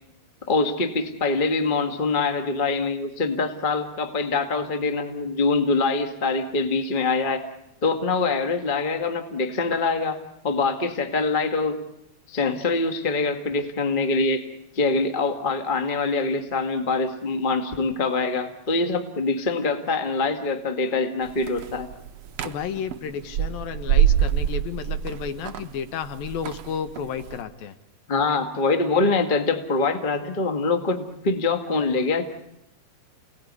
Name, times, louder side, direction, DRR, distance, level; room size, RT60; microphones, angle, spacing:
voice 1, 0.5-7.4 7.8-10.2 10.4-11.8 12.3-14.5 14.7-21.9 28.1-32.2, left 3 dB, 35° left, 5 dB, 0.8 m, -24 dB
sound 1, 21.3-27.4, right 10 dB, 90° right, 1.3 m, -26 dB
voice 2, 22.4-27.7, left 7 dB, 70° left, 10 dB, 2.8 m, -32 dB
29.5 x 19.0 x 9.7 m, 0.84 s
omnidirectional pair, 4.6 m